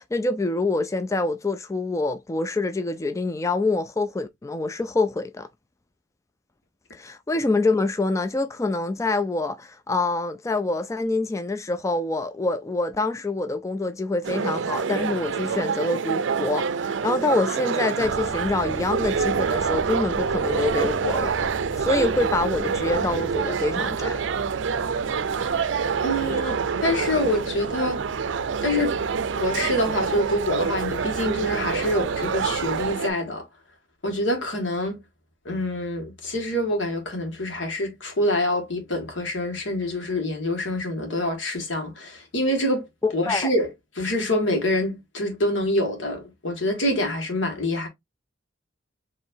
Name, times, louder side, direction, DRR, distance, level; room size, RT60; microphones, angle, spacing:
voice 1, 0.0-5.5 6.9-21.4 21.8-24.2 43.0-43.5, left 2 dB, 15° left, 0.3 m, -26 dB
sound 1, 14.2-33.1, right 6 dB, 80° right, 0.4 m, -26 dB
sound 2, 18.0-32.9, equal, 45° left, 1.2 m, -40 dB
voice 2, 26.0-28.0 28.6-29.0 29.3-33.4 34.0-35.0 35.5-42.9 43.1-43.7 44.0-47.9, left 1 dB, 85° left, 1.7 m, -26 dB
4.6 x 3.1 x 2.6 m
head